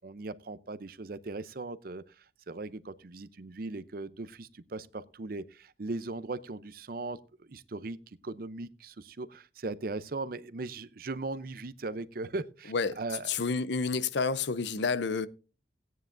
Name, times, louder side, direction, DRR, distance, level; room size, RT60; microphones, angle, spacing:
voice 1, 0.0-13.3, right 3 dB, 50° right, 0.6 m, -39 dB
voice 2, 13.3-15.3, left 4 dB, 70° left, 0.6 m, -29 dB
16.5 x 9.5 x 2.5 m
head